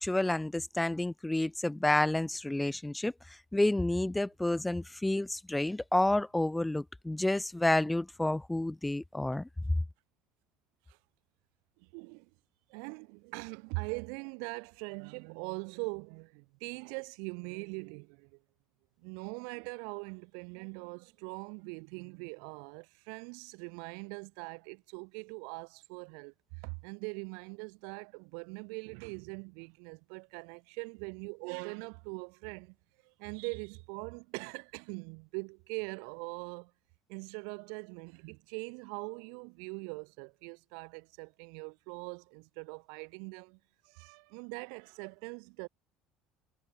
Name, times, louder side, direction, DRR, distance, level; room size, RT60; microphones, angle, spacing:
voice 1, 0.0-9.5, left 1 dB, 10° left, 1.3 m, -30 dB
voice 2, 11.8-12.3 12.7-18.4 19.0-32.8 33.0-36.7 37.1-43.6 43.8-45.7, right 40 dB or more, 80° right, 2.2 m, -42 dB
supercardioid pair, 95°, 0 cm